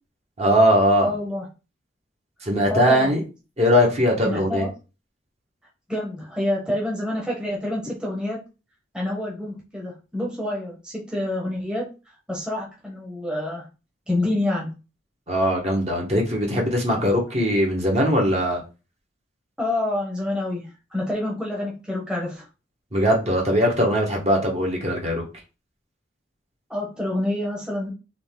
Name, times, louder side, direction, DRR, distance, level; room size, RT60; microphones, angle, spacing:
voice 1, 0.4-1.1 2.4-3.2 3.6-4.7 15.3-18.6 22.9-25.2, equal, 35° right, 0 dB, 1.4 m, -20 dB
voice 2, 1.0-1.4 2.7-3.1 4.2-4.7 5.9-8.4 8.9-11.9 12.3-13.6 14.1-14.7 19.6-22.4 26.7-27.9, left 1 dB, 5° right, -3 dB, 1.1 m, -27 dB
3.9 x 3.3 x 3.7 m, 0.31 s
head